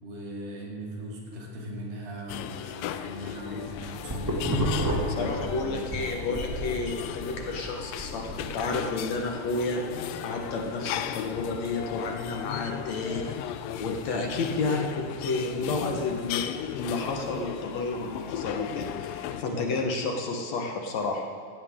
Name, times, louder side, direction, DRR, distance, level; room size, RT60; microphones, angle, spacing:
voice 1, 0.0-6.1 19.3-19.8, equal, 85° right, -2 dB, 4.3 m, -39 dB
sound 1, 2.3-19.4, left 10 dB, 85° left, 2.3 m, -36 dB
sound 2, 3.5-6.0 6.3-8.7, equal, 10° right, 0.9 m, -30 dB
voice 2, 5.2-16.4 16.8-21.2, left 3 dB, 60° left, 2 dB, 2.2 m, -31 dB
17.0 x 16.0 x 3.7 m, 2.2 s
omnidirectional pair, 3.9 m